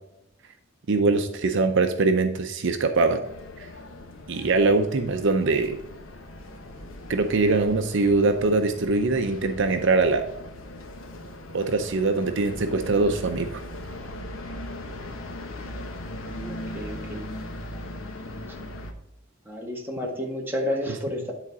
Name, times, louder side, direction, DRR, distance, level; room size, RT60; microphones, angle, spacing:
voice 1, 0.9-3.2 3.6-3.7 4.3-5.8 7.1-10.2 11.5-13.6 20.9-21.0, right 3 dB, 65° right, 7 dB, 0.6 m, -22 dB
sound 1, 3.2-18.9, left 1 dB, 85° left, 1.0 m, -39 dB
voice 2, 16.1-17.2 19.4-21.3, left 1 dB, 10° right, -1 dB, 1.7 m, -31 dB
10.5 x 4.1 x 4.8 m, 0.88 s
head